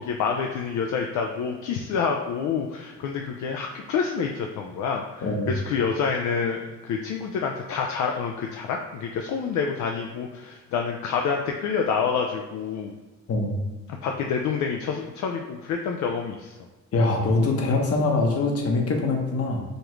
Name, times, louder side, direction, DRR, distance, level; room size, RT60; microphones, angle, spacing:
voice 1, 0.0-13.0 14.0-16.6, left 6 dB, 70° left, 2 dB, 0.5 m, -28 dB
voice 2, 5.2-5.5 13.3-13.6 16.9-19.6, left 2 dB, 50° left, 2 dB, 0.9 m, -23 dB
5.1 x 2.4 x 3.1 m, 1.2 s
cardioid pair, 90°, 30 cm